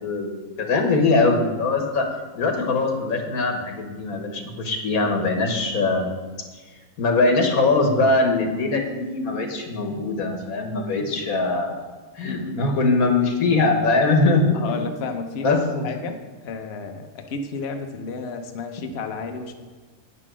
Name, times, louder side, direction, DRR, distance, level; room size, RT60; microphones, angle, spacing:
voice 1, 0.0-2.1 2.3-6.1 7.0-11.8 12.2-14.8 15.4-15.8, left 3 dB, 90° left, 4 dB, 1.7 m, -22 dB
voice 2, 5.8-6.1 12.2-12.6 14.5-19.5, left 4 dB, 55° left, 5 dB, 1.0 m, -32 dB
9.1 x 5.7 x 6.2 m, 1.4 s
omnidirectional pair, 1.5 m